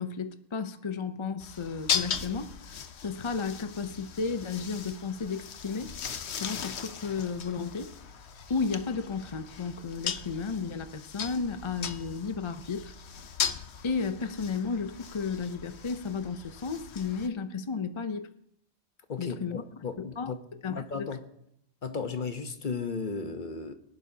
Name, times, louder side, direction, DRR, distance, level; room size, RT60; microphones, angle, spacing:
voice 1, 0.0-5.9 6.4-7.9 8.5-12.9 13.8-18.3 19.2-19.6 20.2-20.3 20.6-21.1, left 5 dB, 35° left, 0.6 m, -33 dB
sound 1, 1.4-17.3, left 7 dB, 85° left, 1.1 m, -38 dB
voice 2, 19.1-20.4 20.7-21.2 21.8-23.7, left 5 dB, 50° left, 1.1 m, -35 dB
23.5 x 11.0 x 2.8 m
omnidirectional pair, 1.1 m